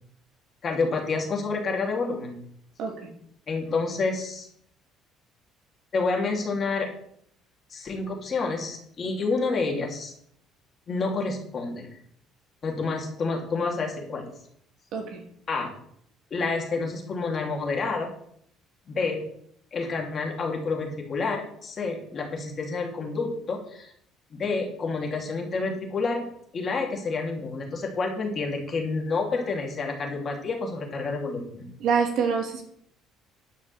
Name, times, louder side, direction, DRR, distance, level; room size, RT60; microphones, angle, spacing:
voice 1, 0.6-2.4 3.5-4.5 5.9-6.9 7.7-10.1 10.9-11.9 12.6-14.2 15.5-15.7 16.3-18.1 18.9-19.2 19.7-23.9 24.3-26.2 26.5-31.7, left 4 dB, 35° left, 1 dB, 3.0 m, -29 dB
voice 2, 14.9-15.2 31.8-32.6, right 6 dB, 60° right, 3 dB, 2.6 m, -25 dB
11.0 x 6.0 x 7.0 m, 0.67 s
cardioid pair, 135°, 0 cm